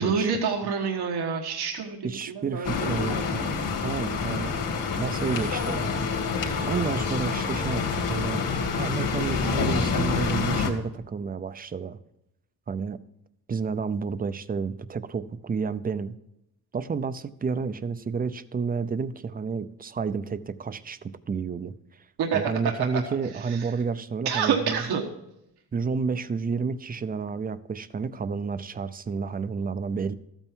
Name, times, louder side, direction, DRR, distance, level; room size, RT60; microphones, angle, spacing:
voice 1, 0.0-2.1 2.3-3.2 8.6-8.7 22.2-22.4 23.5-23.6 24.2-25.1, right 6 dB, 85° right, 2 dB, 1.4 m, -27 dB
voice 2, 2.0-4.6 5.0-5.9 6.6-8.5 8.7-12.0 12.7-13.0 13.5-16.2 16.7-21.7 22.3-24.8 25.7-30.1, right 5 dB, 25° right, 14 dB, 0.5 m, -30 dB
sound 1, 2.6-10.7, left 5 dB, 60° left, 2.4 m, -27 dB
13.5 x 9.0 x 4.5 m, 0.83 s
wide cardioid pair, 150°, 38 cm